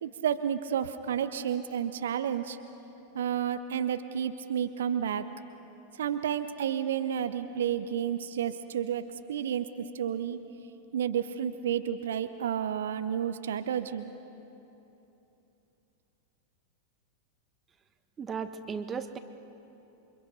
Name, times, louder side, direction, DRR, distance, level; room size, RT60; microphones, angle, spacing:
voice 1, 0.0-2.6 3.1-5.3 6.0-10.4 10.9-14.1, right 9 dB, 60° right, 10 dB, 0.8 m, -31 dB
voice 2, 18.2-19.2, right 6 dB, 20° right, 10 dB, 1.2 m, -35 dB
28.5 x 24.5 x 5.2 m, 3.0 s
figure-of-eight pair, 90°, 0 cm